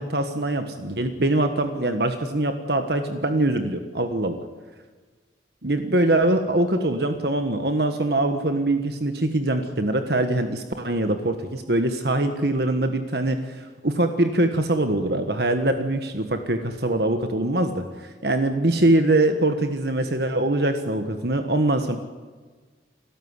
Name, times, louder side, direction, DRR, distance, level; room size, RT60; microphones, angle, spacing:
voice 1, 0.0-4.4 5.6-22.0, right 1 dB, 60° right, 7 dB, 1.5 m, -23 dB
29.0 x 13.0 x 9.8 m, 1.4 s
head